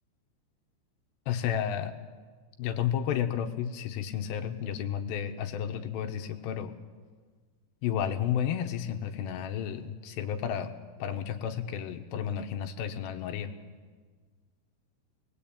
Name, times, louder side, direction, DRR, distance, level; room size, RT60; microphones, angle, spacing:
voice 1, 1.3-1.9 2.6-6.7 7.8-10.7 11.0-13.5, left 9 dB, 75° left, 6 dB, 3.1 m, -32 dB
27.0 x 21.0 x 8.7 m, 1.5 s
omnidirectional pair, 5.3 m